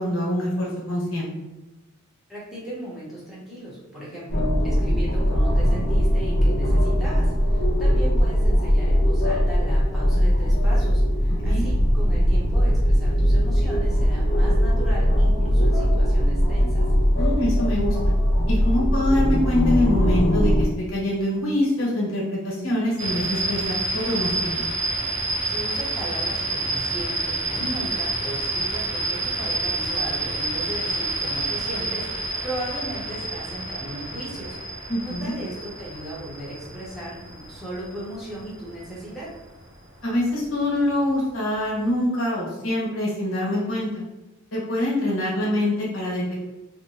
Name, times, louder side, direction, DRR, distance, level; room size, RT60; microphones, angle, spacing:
voice 1, 0.0-1.3 11.4-11.6 17.2-17.9 18.5-24.7 34.9-35.3 40.0-43.9 44.5-46.3, left 1 dB, 85° left, -4 dB, 1.1 m, -24 dB
voice 2, 2.3-16.9 25.4-39.3, right 1 dB, ahead, -8 dB, 0.8 m, -36 dB
sound 1, 4.3-20.6, equal, 70° left, 0.7 m, -20 dB
sound 2, 23.0-39.6, right 2 dB, 60° right, 0.6 m, -29 dB
2.6 x 2.1 x 2.8 m, 1.0 s
head